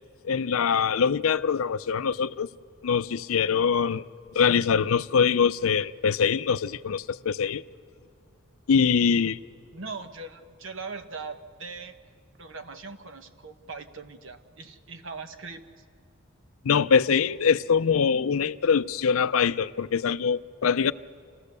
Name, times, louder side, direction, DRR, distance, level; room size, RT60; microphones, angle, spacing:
voice 1, 0.2-2.5 2.8-4.1 4.3-7.6 8.7-9.4 16.6-20.9, left 6 dB, 80° left, 0.5 m, -23 dB
voice 2, 9.7-12.0 12.4-15.7, right 4 dB, 65° right, 1.1 m, -40 dB
28.0 x 15.0 x 6.7 m
head